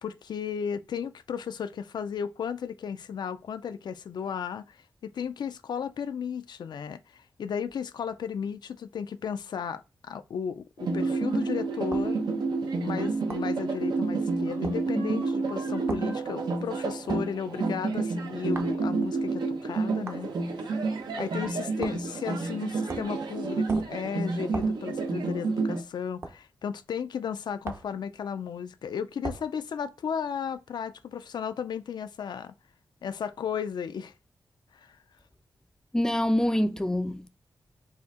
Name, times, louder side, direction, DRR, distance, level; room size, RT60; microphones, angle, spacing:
voice 1, 0.0-12.3 12.8-20.3 21.2-32.5 33.0-34.1 34.7-35.0, left 7 dB, 85° left, 0.4 m, -34 dB
sound 1, 10.8-25.8, right 3 dB, 85° right, 0.8 m, -29 dB
sound 2, 11.9-12.1 13.3-13.5 14.6-14.8 15.9-16.1 17.1-17.3 18.5-18.8 20.1-20.2 21.8-22.1 22.9-23.2 23.7-24.0 24.5-24.8 26.2-26.4 27.6-27.9 29.2-29.5, right 3 dB, 35° right, 0.6 m, -38 dB
voice 2, 35.9-37.3, left 1 dB, 10° left, 0.3 m, -25 dB
4.2 x 2.7 x 3.6 m
wide cardioid pair, 150°, 7 cm